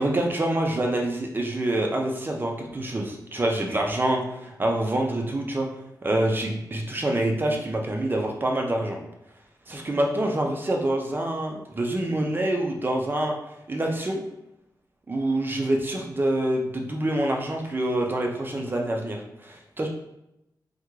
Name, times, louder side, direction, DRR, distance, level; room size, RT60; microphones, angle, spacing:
voice 1, 0.0-5.7 6.0-9.0 9.7-13.3 13.7-14.2 15.1-19.9, right 1 dB, 25° right, 1 dB, 0.5 m, -26 dB
3.5 x 2.2 x 3.1 m, 0.86 s
wide cardioid pair, 115°, 8 cm